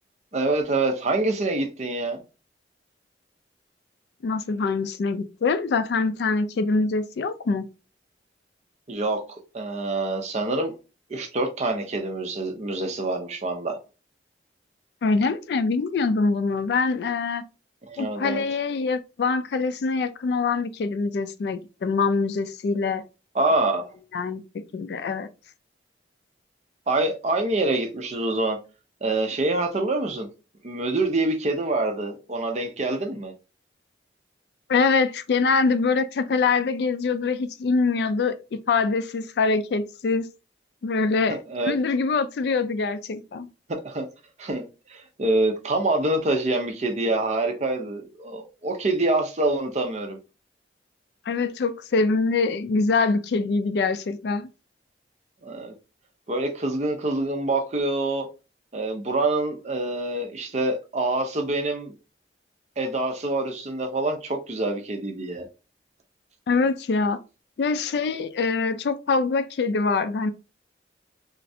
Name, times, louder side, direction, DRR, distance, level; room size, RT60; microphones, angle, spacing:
voice 1, 0.3-2.2 8.9-10.8 11.1-13.8 17.9-18.4 23.3-23.8 26.9-28.6 29.0-30.3 30.6-33.3 41.5-41.7 43.8-44.1 44.4-44.6 44.9-50.2 55.4-55.7 56.3-58.3 58.7-61.9 62.8-65.5, right 2 dB, 40° right, 0.6 m, -26 dB
voice 2, 4.2-7.6 15.0-17.4 18.0-23.0 24.1-24.4 24.7-25.3 34.7-40.3 40.8-41.4 41.6-43.5 51.3-54.5 66.5-67.2 67.6-70.3, left 4 dB, 60° left, 0.3 m, -24 dB
3.1 x 2.4 x 2.6 m
head